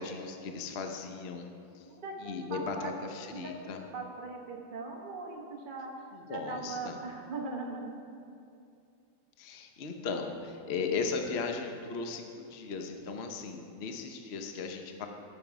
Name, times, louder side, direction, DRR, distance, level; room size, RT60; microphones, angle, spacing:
voice 1, 0.0-1.5 1.7-1.9 2.2-3.8 6.1-7.0 9.4-15.1, left 4 dB, 65° left, 4 dB, 0.6 m, -37 dB
voice 2, 1.8-3.0 3.3-8.0, right 3 dB, 30° right, -1 dB, 1.2 m, -40 dB
14.0 x 7.3 x 4.7 m, 2.5 s
omnidirectional pair, 2.2 m